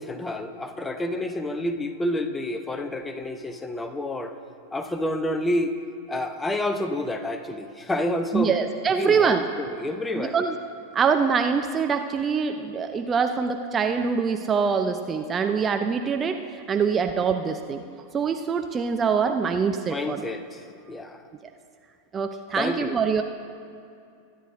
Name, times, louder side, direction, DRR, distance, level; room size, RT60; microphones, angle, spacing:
voice 1, 0.0-4.3 4.7-5.7 6.1-8.5 9.0-10.4 19.9-21.2 22.6-23.1, left 1 dB, 10° left, 8 dB, 0.7 m, -29 dB
voice 2, 8.3-9.4 10.1-10.5 10.9-16.4 16.7-17.8 18.1-20.2 22.1-23.2, right 6 dB, 20° right, 6 dB, 0.5 m, -24 dB
22.0 x 10.0 x 2.6 m, 2.5 s
figure-of-eight pair, 90°, 0 cm